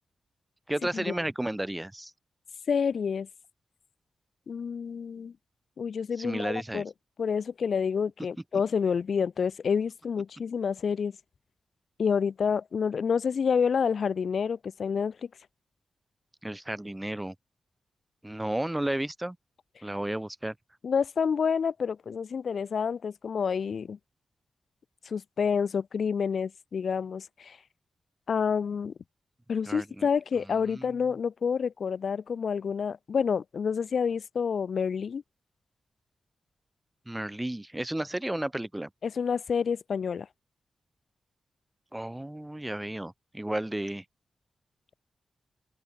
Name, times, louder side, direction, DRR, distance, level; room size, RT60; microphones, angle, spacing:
voice 1, 0.7-2.1 6.2-6.8 16.4-17.3 18.2-19.4 19.8-20.5 29.7-30.1 30.7-31.0 37.1-38.9 41.9-44.0, right 1 dB, 15° right, 2.3 m, -33 dB
voice 2, 2.7-3.3 4.5-5.3 5.8-6.9 7.2-11.1 12.0-15.2 20.8-24.0 25.1-27.6 28.3-28.9 29.5-35.2 39.0-40.3, left 6 dB, 70° left, 0.3 m, -28 dB
open air
cardioid pair, 50°, 0 cm